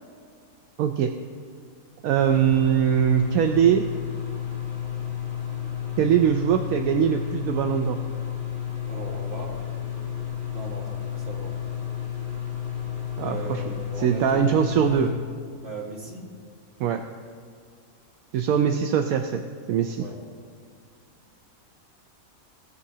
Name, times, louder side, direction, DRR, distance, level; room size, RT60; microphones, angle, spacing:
voice 1, 0.8-1.1 2.0-3.8 6.0-8.0 13.2-13.6 14.0-15.1 16.8-17.0 18.3-19.4 19.7-20.0, right 8 dB, 80° right, 5 dB, 1.0 m, -22 dB
sound 1, 2.2-15.1, left 9 dB, 30° left, 2.2 m, -32 dB
voice 2, 8.9-9.6 10.5-11.6 13.1-14.4 15.6-16.3 20.0-20.2, right 2 dB, 45° right, -3 dB, 2.2 m, -37 dB
17.0 x 8.1 x 2.8 m, 2.2 s
omnidirectional pair, 1.5 m